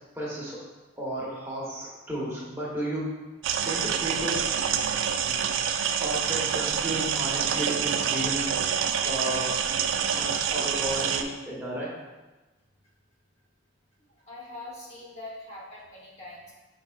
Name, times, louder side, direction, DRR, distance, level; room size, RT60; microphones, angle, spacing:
voice 1, 0.1-0.6 1.0-3.0 3.6-4.4 6.0-8.5 8.8-9.6 10.1-11.9, right 1 dB, 15° right, -6 dB, 0.9 m, -33 dB
sound 1, 3.4-11.2, right 7 dB, 75° right, 0.3 m, -27 dB
voice 2, 14.1-16.5, left 2 dB, 35° left, -5 dB, 0.9 m, -43 dB
5.3 x 4.1 x 2.3 m, 1.2 s
head